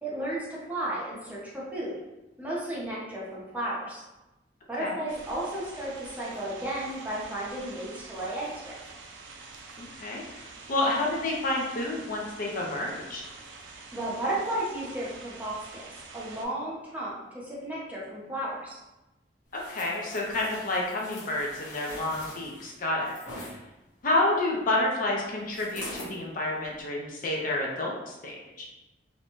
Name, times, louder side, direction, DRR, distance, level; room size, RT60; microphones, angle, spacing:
voice 1, 0.0-2.0 2.4-4.0 4.7-8.8 13.9-15.9 16.1-18.8, right 1 dB, 10° right, -6 dB, 0.6 m, -33 dB
sound 1, 5.1-16.5, right 3 dB, 85° right, 0.4 m, -46 dB
voice 2, 9.8-13.2 19.5-23.6 24.0-28.7, left 2 dB, 50° left, -2 dB, 0.4 m, -29 dB
sound 2, 19.5-23.5 25.5-26.2 26.7-26.8, left 1 dB, 80° left, 0.8 m, -43 dB
2.5 x 2.1 x 2.9 m, 1.0 s
head